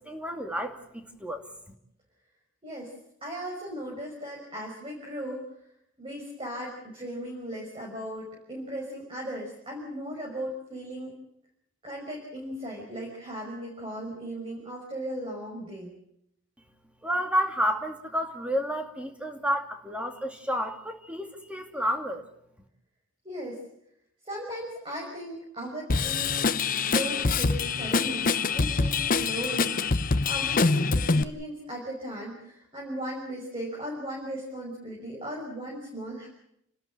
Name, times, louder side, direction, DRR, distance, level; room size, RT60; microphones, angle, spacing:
voice 1, 0.0-1.4 17.0-22.2, equal, 5° right, 4 dB, 2.4 m, -30 dB
voice 2, 2.6-2.9 3.2-5.4 6.0-11.2 11.8-15.9 23.2-23.6 24.2-26.5 26.8-36.3, equal, 25° right, -3 dB, 5.9 m, -37 dB
Drum kit / Drum, 25.9-31.2, left 4 dB, 40° left, 0.8 m, -25 dB
30.0 x 13.0 x 9.9 m, 0.77 s
head